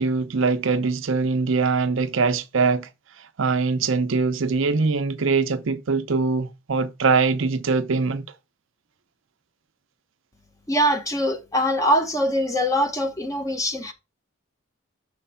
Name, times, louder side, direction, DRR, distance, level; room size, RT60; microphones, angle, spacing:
voice 1, 0.0-2.9 3.2-8.3, right 4 dB, 65° right, 0.6 m, -22 dB
voice 2, 10.7-13.9, equal, 15° left, 0.8 m, -23 dB
6.6 x 3.1 x 5.5 m
head